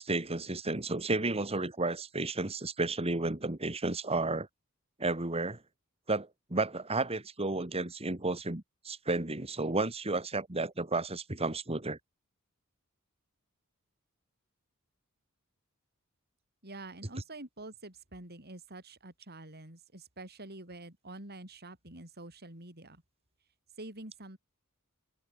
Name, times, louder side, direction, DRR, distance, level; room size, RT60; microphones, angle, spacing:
voice 1, 0.0-4.5 5.0-5.6 6.1-12.0, right 2 dB, 25° right, 2.1 m, -32 dB
voice 2, 16.6-23.0 23.8-24.4, right 2 dB, 45° right, 7.9 m, -47 dB
head